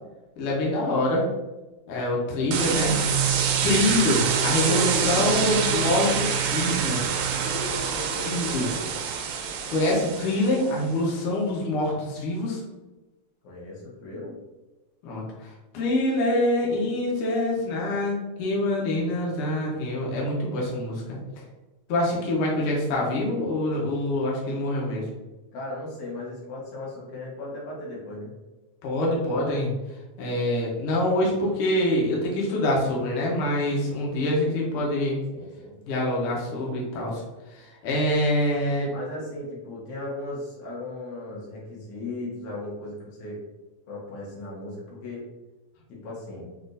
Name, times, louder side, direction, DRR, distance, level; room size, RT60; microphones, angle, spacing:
voice 1, 0.4-1.2 1.9-3.0 3.6-6.2 6.5-7.1 8.2-8.7 9.7-12.6 15.0-21.2 21.9-25.0 28.8-29.7 30.2-35.2 35.8-37.2 37.6-38.9, left 1 dB, 85° left, -3 dB, 1.2 m, -25 dB
sound 1, 2.5-10.7, right 7 dB, 85° right, 1.6 m, -26 dB
voice 2, 4.4-6.6 7.3-8.9 13.4-14.4 25.5-28.3 35.3-35.8 38.9-43.4 43.9-45.2 45.9-46.5, left 1 dB, 65° left, -5 dB, 2.4 m, -36 dB
6.0 x 2.5 x 2.6 m, 1.1 s
omnidirectional pair, 3.8 m